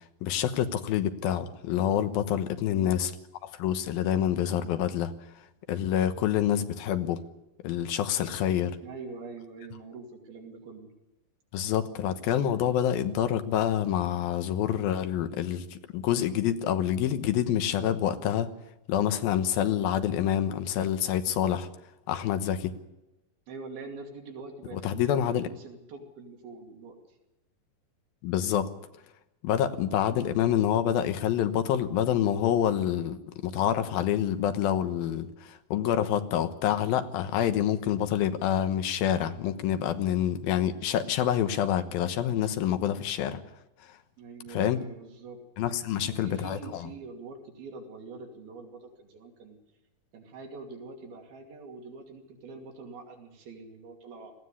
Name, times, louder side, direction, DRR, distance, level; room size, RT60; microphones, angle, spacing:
voice 1, 0.2-3.1 3.4-5.1 5.7-7.2 7.6-8.8 11.5-18.5 18.9-21.7 22.1-22.7 24.7-25.5 28.2-28.7 29.4-43.4 44.5-44.8 45.6-46.9, left 10 dB, 80° left, 9 dB, 2.9 m, -27 dB
voice 2, 2.7-3.0 8.8-10.9 23.5-27.2 44.2-45.4 45.9-49.6 50.1-54.3, right 4 dB, 85° right, 3 dB, 4.4 m, -44 dB
19.5 x 15.0 x 9.9 m, 0.95 s
omnidirectional pair, 4.2 m